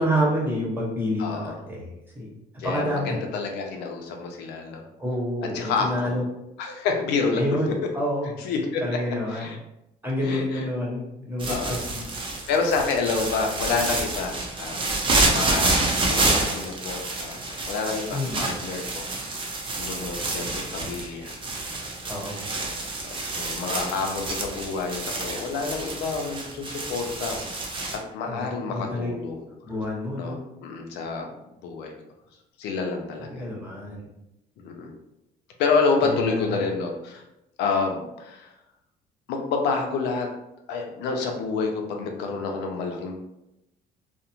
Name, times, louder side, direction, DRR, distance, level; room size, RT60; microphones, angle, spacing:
voice 1, 0.0-2.3 2.6-3.2 5.0-6.2 7.3-8.3 8.8-9.6 10.0-12.1 18.1-18.4 22.1-22.4 28.2-29.1 29.6-30.4 33.3-34.1 36.0-36.6, equal, 10° right, -5 dB, 0.9 m, -28 dB
voice 2, 1.2-1.6 2.6-4.8 5.5-6.1 6.6-7.5 8.4-8.8 9.3-9.6 10.2-10.6 11.5-11.8 12.5-14.8 15.3-17.4 17.7-21.4 23.0-27.8 28.1-29.5 30.2-31.3 31.6-31.9 32.6-33.4 34.6-34.9 35.6-37.2 37.6-38.5 39.3-40.3 40.7-43.1, left 4 dB, 85° left, 2 dB, 0.5 m, -28 dB
sound 1, 11.4-28.0, right 2 dB, 30° right, 0.5 m, -28 dB
2.5 x 2.0 x 2.8 m, 0.87 s
cardioid pair, 110°, 17 cm